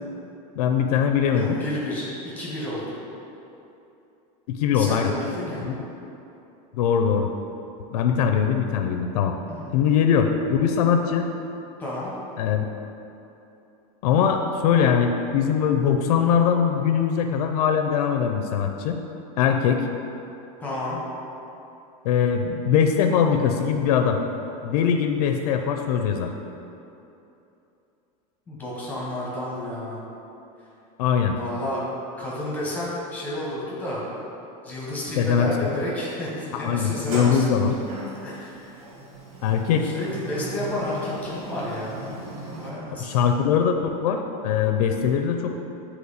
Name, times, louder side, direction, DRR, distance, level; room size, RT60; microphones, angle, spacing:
voice 1, 0.6-1.6 4.5-5.1 5.6-5.7 6.7-7.3 7.9-9.3 9.7-11.3 12.4-12.7 14.0-19.0 19.4-19.9 22.0-24.2 24.6-26.3 31.0-31.4 35.2-35.8 36.5-37.8 39.4-39.9 43.0-45.6, left 7 dB, 85° left, 5 dB, 0.4 m, -21 dB
voice 2, 1.3-3.0 4.7-5.7 9.5-9.8 11.8-12.1 20.6-21.0 28.5-30.0 31.4-31.8 32.2-34.1 34.6-37.4 38.2-38.7 39.8-42.2 42.5-43.2, left 1 dB, 10° left, -6 dB, 0.9 m, -31 dB
Sliding door, 36.7-42.7, right 1 dB, 70° right, 1.2 m, -37 dB
7.8 x 3.0 x 4.0 m, 2.9 s
supercardioid pair, 175°, 19 cm